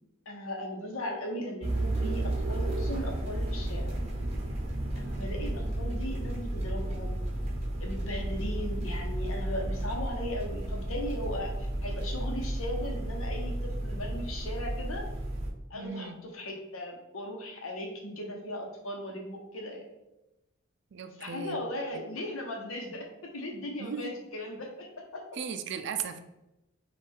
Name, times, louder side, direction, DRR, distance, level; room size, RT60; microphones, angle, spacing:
voice 1, 0.3-4.0 4.9-7.2 7.8-15.0 15.7-19.8 21.0-23.1 23.3-25.2, left 1 dB, 90° left, 2 dB, 0.9 m, -38 dB
sound 1, 1.6-15.5, right 1 dB, 30° right, 0.8 m, -32 dB
voice 2, 15.7-16.2 20.9-21.6 21.9-22.0 23.8-24.2 25.3-26.2, right 7 dB, 60° right, 8 dB, 0.4 m, -37 dB
5.3 x 2.4 x 3.5 m, 0.94 s
head